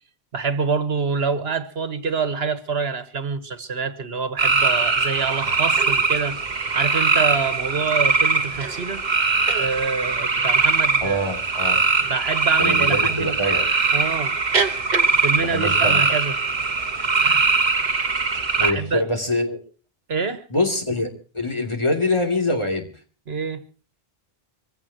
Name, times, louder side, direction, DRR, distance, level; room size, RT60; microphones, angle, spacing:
voice 1, 0.3-6.4 6.7-9.0 9.6-11.2 12.1-13.4 13.9-14.4 15.2-16.3 17.2-17.4 18.6-19.0 20.1-20.4 23.3-23.6, right 5 dB, 75° right, 1.6 m, -26 dB
sound 1, 4.4-18.7, right 4 dB, 45° right, 1.3 m, -21 dB
voice 2, 11.0-11.8 12.6-13.7 15.4-16.0 18.6-19.6 20.5-22.9, left 1 dB, 30° left, 3.0 m, -24 dB
25.0 x 16.0 x 2.9 m
omnidirectional pair, 1.0 m